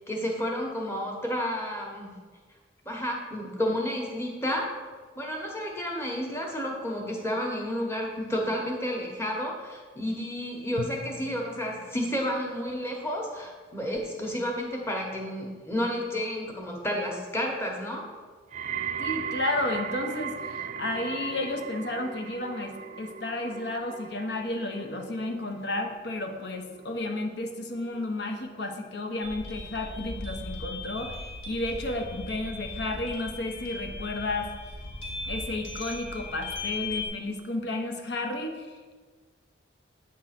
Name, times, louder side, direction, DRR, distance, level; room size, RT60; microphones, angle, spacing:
voice 1, 0.1-2.1 2.8-4.7 5.2-18.0, equal, 15° left, 0 dB, 1.1 m, -31 dB
Drum, 10.8-13.7, left 3 dB, 70° left, 0.5 m, -44 dB
sound 1, 18.5-29.6 29.9-30.5 31.2-31.3, right 8 dB, 35° right, 0.3 m, -38 dB
voice 2, 19.0-34.5 35.2-38.9, left 2 dB, 55° left, 4 dB, 0.8 m, -32 dB
sound 2, 29.2-37.1, left 2 dB, 90° left, 1.8 m, -38 dB
8.5 x 3.7 x 5.8 m, 1.5 s
head